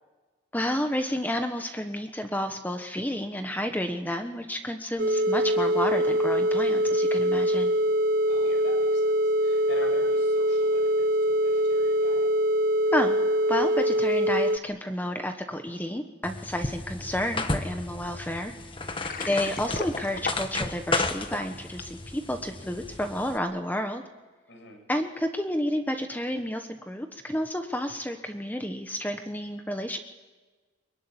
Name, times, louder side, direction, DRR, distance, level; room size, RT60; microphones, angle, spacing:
voice 1, 0.5-7.7 12.9-13.2 13.5-18.5 19.2-24.0 24.9-30.0, left 1 dB, 10° left, 6 dB, 1.1 m, -30 dB
sound 1, 5.0-14.6, equal, 45° right, 0.7 m, -23 dB
voice 2, 8.3-12.3 19.1-19.3 24.5-24.8, left 1 dB, 60° left, 4 dB, 6.8 m, -44 dB
sound 2, 16.2-23.4, left 2 dB, 25° left, 1.4 m, -33 dB
Water, 18.8-22.0, left 3 dB, 40° left, 1.6 m, -37 dB
23.0 x 22.5 x 9.9 m, 1.3 s
head